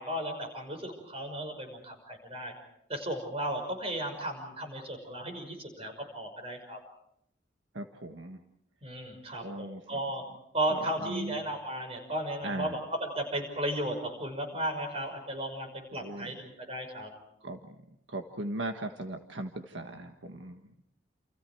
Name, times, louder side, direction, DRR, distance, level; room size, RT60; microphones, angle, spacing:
voice 1, 0.0-2.5 2.9-6.8 8.8-10.2 10.5-17.1, right 1 dB, 30° right, 5 dB, 5.9 m, -35 dB
voice 2, 7.7-8.4 9.4-10.0 10.7-11.4 12.4-12.8 15.9-16.3 17.4-17.7 18.1-20.7, right 1 dB, 75° right, 5 dB, 1.6 m, -38 dB
29.5 x 29.0 x 4.7 m, 0.75 s
head